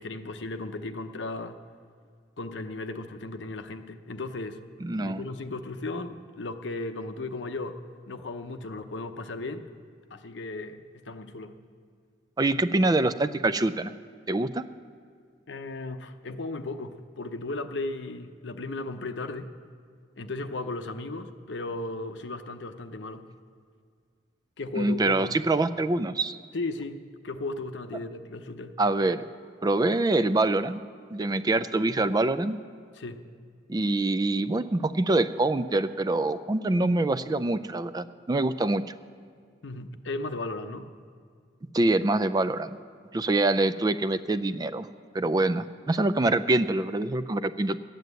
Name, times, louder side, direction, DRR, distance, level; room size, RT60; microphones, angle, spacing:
voice 1, 0.0-1.6 2.4-4.6 5.0-7.8 8.1-9.7 10.1-11.5 15.5-19.5 20.2-23.2 24.6-25.3 26.5-27.0 27.2-28.7 33.0-33.2 39.6-40.9, left 2 dB, 85° left, 8 dB, 0.8 m, -35 dB
voice 2, 4.8-5.2 12.4-13.9 14.3-14.6 24.8-26.4 28.8-29.2 29.6-30.8 31.1-32.6 33.7-38.8 41.7-42.8 43.1-44.9 45.1-47.8, right 2 dB, 20° right, 13 dB, 0.4 m, -25 dB
12.0 x 9.2 x 8.1 m, 2.1 s
head